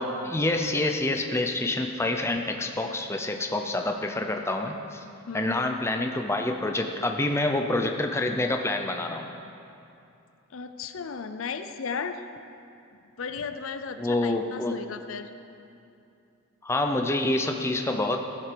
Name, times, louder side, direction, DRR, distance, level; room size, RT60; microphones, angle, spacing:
voice 1, 0.0-5.0 5.3-9.3 14.0-14.8 16.6-18.2, left 2 dB, 10° left, 4 dB, 0.5 m, -27 dB
voice 2, 5.3-5.6 10.5-12.2 13.2-15.3, left 5 dB, 70° left, 9 dB, 0.5 m, -35 dB
14.0 x 7.5 x 5.1 m, 2.6 s
head